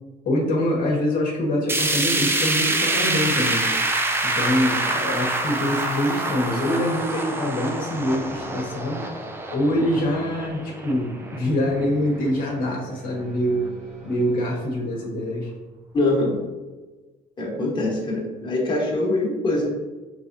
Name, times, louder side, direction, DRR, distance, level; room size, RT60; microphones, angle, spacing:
voice 1, 0.2-3.7 4.2-9.1 9.5-13.7 14.0-15.5, left 1 dB, 55° left, -2 dB, 1.0 m, -24 dB
sound 1, 1.7-11.8 12.2-12.3 12.7-12.8 13.7-13.8, right 2 dB, 15° right, 0.5 m, -26 dB
sound 2, 7.7-14.5, right 2 dB, 45° right, 1.3 m, -44 dB
voice 2, 15.9-16.4 17.4-19.7, left 2 dB, 25° left, -3 dB, 1.2 m, -23 dB
4.9 x 3.4 x 2.6 m, 1.2 s
cardioid pair, 110°, 17 cm